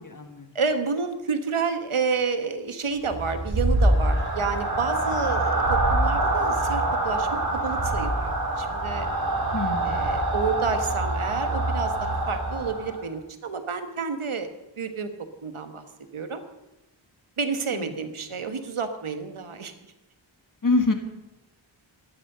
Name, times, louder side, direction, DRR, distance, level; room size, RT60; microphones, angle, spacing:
voice 1, 0.0-0.5 9.5-10.2 17.7-17.9 20.6-20.9, left 3 dB, 40° left, 6 dB, 1.7 m, -26 dB
voice 2, 0.5-9.1 9.8-14.5 14.8-15.1 15.4-15.8 16.1-16.4 17.4-19.7, right 5 dB, 90° right, 8 dB, 1.5 m, -30 dB
sound 1, 3.1-13.1, right 2 dB, 45° right, 3.3 m, -25 dB
14.0 x 11.0 x 6.8 m, 1.0 s
wide cardioid pair, 75°, 48 cm